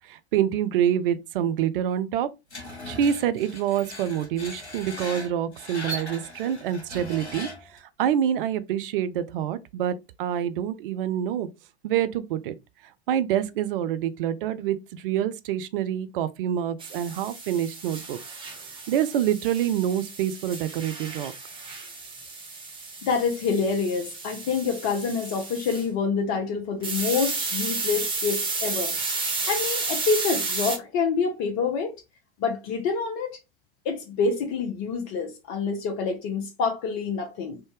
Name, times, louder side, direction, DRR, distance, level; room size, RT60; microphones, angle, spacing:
voice 1, 0.1-2.3 2.9-11.5 11.8-12.5 13.1-18.2 18.9-21.3, right 10 dB, 55° right, 0.4 m, -26 dB
Screech, 2.5-7.8, left 1 dB, 85° left, 1.1 m, -38 dB
sound 1, 16.8-25.8 26.8-30.8, right 3 dB, 15° right, 0.9 m, -32 dB
voice 2, 23.0-28.9 29.5-31.9 32.4-33.3 33.8-37.6, left 5 dB, 40° left, 0.7 m, -27 dB
3.3 x 2.6 x 3.1 m
figure-of-eight pair, 90°, 33 cm